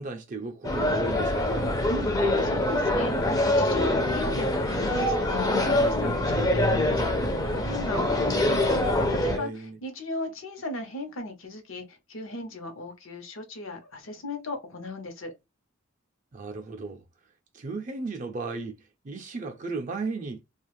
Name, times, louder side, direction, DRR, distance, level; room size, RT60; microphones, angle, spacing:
voice 1, 0.0-1.7 9.3-9.8 16.3-17.0 17.5-18.8 19.0-20.4, right 3 dB, 40° right, 0.4 m, -35 dB
sound 1, 0.6-9.4, left 1 dB, 20° left, 0.5 m, -24 dB
voice 2, 1.9-8.6 8.9-15.3, left 1 dB, 75° left, 0.8 m, -36 dB
2.4 x 2.3 x 3.1 m
head